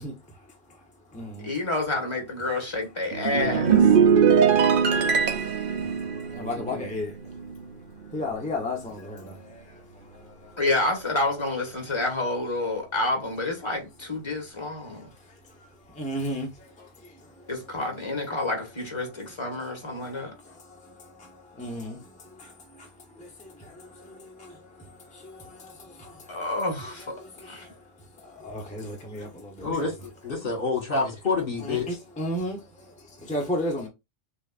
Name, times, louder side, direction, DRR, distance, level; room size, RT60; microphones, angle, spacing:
voice 1, 0.0-1.5 4.1-10.6 14.8-17.7 18.4-18.5 19.0-26.5 26.8-29.9 31.6-33.9, left 1 dB, 5° left, 0.9 m, -37 dB
voice 2, 1.4-3.9 10.6-15.1 17.5-20.3 26.3-27.1 27.4-27.7, left 2 dB, 25° left, 1.4 m, -29 dB
sound 1, 3.1-7.7 8.0-8.3, right 7 dB, 60° right, 0.8 m, -21 dB
voice 3, 29.6-31.9, left 4 dB, 55° left, 1.5 m, -28 dB
6.1 x 2.4 x 2.4 m
omnidirectional pair, 1.1 m